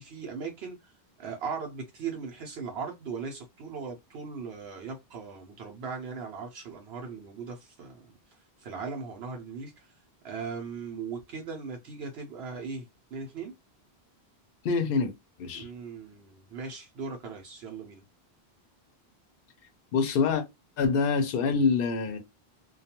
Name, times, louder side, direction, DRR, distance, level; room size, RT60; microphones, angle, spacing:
voice 1, 0.0-10.0 10.2-13.5 15.5-18.0, right 5 dB, 75° right, 0.8 m, -39 dB
voice 2, 14.6-15.1 15.4-15.7 19.9-20.4 20.8-22.2, left 5 dB, 65° left, 0.8 m, -25 dB
2.3 x 2.2 x 2.8 m
omnidirectional pair, 1.1 m